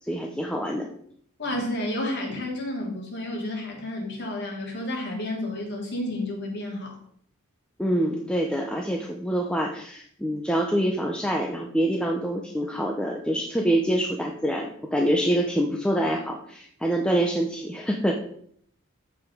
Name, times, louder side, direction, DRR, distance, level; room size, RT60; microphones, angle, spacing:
voice 1, 0.0-0.9 7.8-18.1, right 1 dB, 5° left, 0 dB, 0.8 m, -26 dB
voice 2, 1.4-7.0, left 1 dB, 55° left, -1 dB, 3.2 m, -31 dB
14.0 x 5.0 x 5.2 m, 0.65 s
head